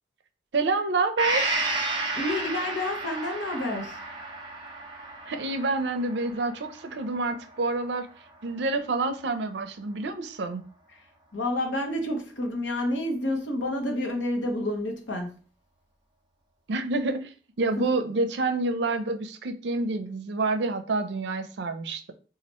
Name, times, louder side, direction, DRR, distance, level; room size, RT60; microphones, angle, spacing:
voice 1, 0.5-1.6 5.3-8.1 8.4-10.6 16.7-17.3 17.6-22.1, right 3 dB, 70° right, 0.5 m, -28 dB
Gong, 1.2-8.8 9.2-9.3, right 2 dB, 25° right, 0.6 m, -33 dB
voice 2, 2.1-4.0 10.9-11.0 11.3-15.3 17.8-17.9, left 1 dB, 85° left, 0.9 m, -29 dB
4.2 x 2.4 x 2.9 m
head